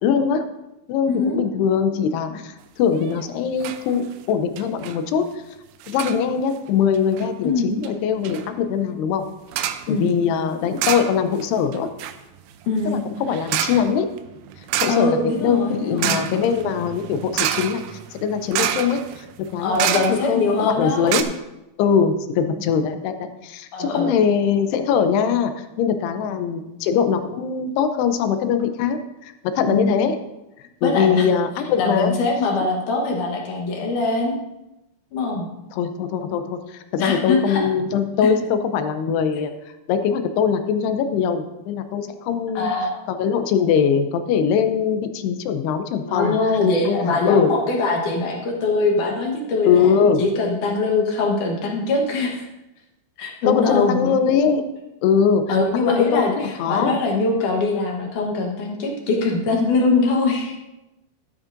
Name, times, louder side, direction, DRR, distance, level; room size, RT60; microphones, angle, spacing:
voice 1, 0.0-0.4 0.9-5.3 5.9-9.2 9.9-11.9 12.9-14.1 14.8-17.8 18.1-21.3 21.8-25.5 25.8-30.2 30.8-32.2 35.7-39.5 39.9-42.7 43.1-46.4 46.9-47.5 49.7-50.2 53.5-54.6 55.0-57.0, left 7 dB, 80° left, 8 dB, 2.7 m, -21 dB
voice 2, 1.1-1.4 7.4-7.8 9.9-10.2 12.7-13.0 14.9-16.2 19.6-21.2 23.7-24.1 29.6-29.9 30.8-31.3 31.8-34.4 35.1-35.5 37.0-37.6 39.3-39.4 42.6-42.9 46.0-49.9 50.2-52.5 53.2-54.2 55.5-60.6, left 3 dB, 65° left, 1 dB, 2.3 m, -22 dB
sound 1, 3.0-3.3 3.6-3.8 4.1-4.2 4.6-5.0 5.8-6.2 6.9-7.3 7.8-7.9 8.2-8.5 9.5-9.9 10.8-11.5 11.7-20.5 20.8-20.9 21.1-21.2, right 11 dB, 85° right, 2.1 m, -28 dB
13.0 x 11.0 x 2.6 m, 0.95 s
omnidirectional pair, 4.7 m